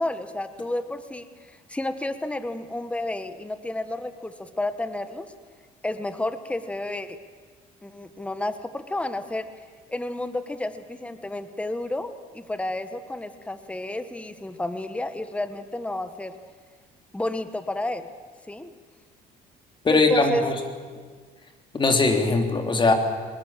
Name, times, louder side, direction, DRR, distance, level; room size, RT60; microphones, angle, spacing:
voice 1, 0.0-5.3 5.8-7.2 7.8-9.5 9.9-16.3 17.1-18.1 18.5-18.7 19.9-20.4, left 2 dB, 5° left, 11 dB, 1.3 m, -31 dB
voice 2, 19.8-20.6 21.7-22.9, left 3 dB, 30° left, 5 dB, 3.3 m, -20 dB
23.5 x 20.5 x 7.5 m, 1.6 s
cardioid pair, 110°, 17 cm